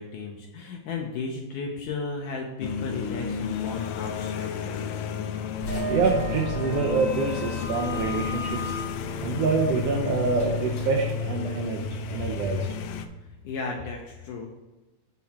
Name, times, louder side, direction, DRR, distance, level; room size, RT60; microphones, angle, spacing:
voice 1, 0.0-4.8 12.0-12.3 13.4-14.6, left 4 dB, 75° left, 0 dB, 2.2 m, -34 dB
sound 1, 2.6-13.1, left 6 dB, 90° left, 1.6 m, -32 dB
sound 2, 5.6-12.1, equal, 50° left, 2.3 m, -36 dB
voice 2, 5.8-8.7 9.2-11.8 12.1-12.7, right 4 dB, 80° right, 0 dB, 1.4 m, -26 dB
7.3 x 5.9 x 4.3 m, 1.1 s
omnidirectional pair, 3.9 m